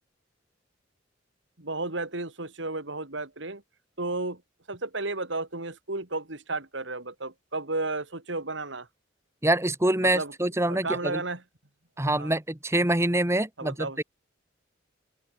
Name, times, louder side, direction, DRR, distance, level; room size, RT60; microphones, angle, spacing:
voice 1, 1.6-3.6 4.0-4.4 4.7-8.9 10.0-10.3 10.7-11.4 12.2-12.3 13.6-14.0, right 2 dB, 70° right, 3.3 m, -33 dB
voice 2, 9.4-11.2 12.0-14.0, right 1 dB, 15° right, 2.2 m, -25 dB
open air
head